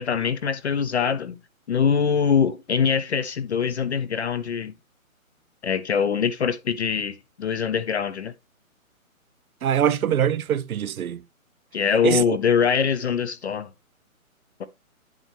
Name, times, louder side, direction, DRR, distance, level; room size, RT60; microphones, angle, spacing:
voice 1, 0.0-1.4 1.7-4.7 5.6-8.3 11.7-13.7 14.6-14.7, left 7 dB, 50° left, 0.7 m, -23 dB
voice 2, 9.6-11.2 12.0-12.2, right 9 dB, 85° right, 0.6 m, -23 dB
10.5 x 4.3 x 3.3 m
hypercardioid pair, 150°, 42 cm